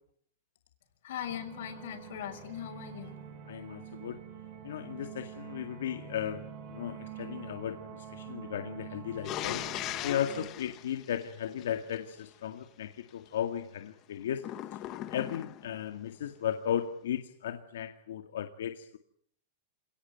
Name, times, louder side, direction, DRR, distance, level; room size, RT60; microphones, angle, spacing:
voice 1, 1.0-3.2, left 10 dB, 65° left, 0 dB, 6.4 m, -40 dB
sound 1, 1.3-10.5, right 9 dB, 35° right, 4.3 m, -46 dB
voice 2, 3.5-4.2 4.6-9.6 10.0-14.5 15.1-19.0, left 9 dB, 90° left, 7 dB, 2.0 m, -35 dB
sound 2, 9.2-12.0 14.4-15.8, left 13 dB, 25° left, 1.2 m, -39 dB
28.0 x 18.5 x 9.4 m, 0.67 s
supercardioid pair, 175°, 0 cm